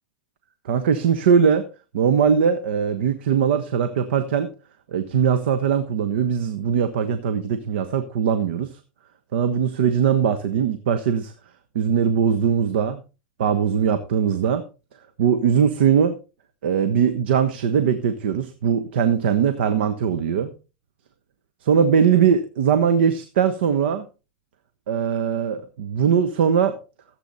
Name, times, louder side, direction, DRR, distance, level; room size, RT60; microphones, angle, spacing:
voice 1, 0.6-1.7 1.9-4.5 4.9-8.7 9.3-11.3 11.7-13.0 13.4-14.6 15.2-16.2 16.6-20.5 21.6-24.1 24.9-26.8, right 7 dB, 80° right, 10 dB, 1.3 m, -20 dB
15.0 x 8.3 x 4.1 m, 0.32 s
hypercardioid pair, 120°, 6 cm